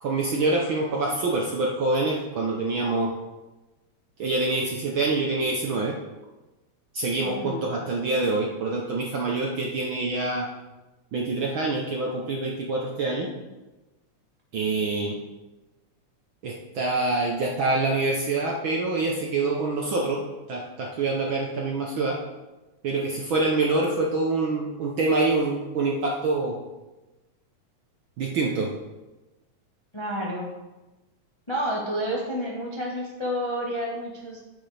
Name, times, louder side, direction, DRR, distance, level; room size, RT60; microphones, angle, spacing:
voice 1, 0.0-3.1 4.2-5.9 6.9-10.5 11.1-13.3 14.5-15.2 16.4-20.2 20.5-22.2 22.8-26.6 28.2-28.7, right 3 dB, 65° right, -1 dB, 1.3 m, -26 dB
voice 2, 7.2-7.7 29.9-30.5 31.5-34.4, equal, 30° left, -3 dB, 0.5 m, -30 dB
9.7 x 8.4 x 3.4 m, 1.1 s
omnidirectional pair, 3.3 m